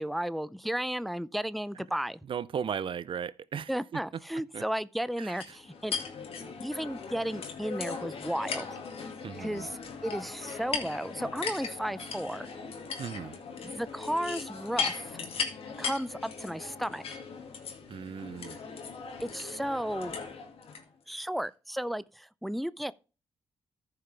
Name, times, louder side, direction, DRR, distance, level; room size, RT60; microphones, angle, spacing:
voice 1, 0.0-2.2 3.7-5.9 6.6-8.7 9.4-12.5 13.6-15.2 15.8-17.0 19.2-20.2 21.1-22.9, equal, ahead, 0.5 m, -34 dB
voice 2, 2.3-3.7 4.5-4.6 5.2-5.4 9.2-9.7 13.0-13.3 17.9-18.6, right 7 dB, 55° right, 0.5 m, -36 dB
sound 1, 5.4-20.8, left 5 dB, 65° left, 2.0 m, -38 dB
14.5 x 5.7 x 3.3 m
supercardioid pair, 45°, 11 cm